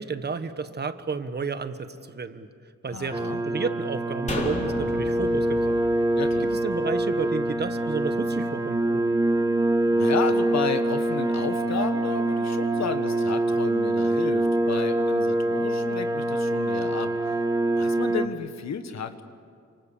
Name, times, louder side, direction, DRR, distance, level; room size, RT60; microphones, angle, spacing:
voice 1, 0.0-2.5 2.8-5.8 6.4-9.0, right 4 dB, 35° right, 10 dB, 1.4 m, -32 dB
voice 2, 2.9-3.4 6.2-6.4 9.9-17.4 17.7-19.2, left 6 dB, 65° left, 9 dB, 1.6 m, -32 dB
sound 1, 3.1-18.3, right 1 dB, 15° right, 1.2 m, -25 dB
sound 2, 4.3-7.6 7.9-8.0, left 2 dB, 25° left, 3.4 m, -35 dB
29.0 x 26.0 x 7.1 m, 2.2 s
cardioid pair, 115°, 29 cm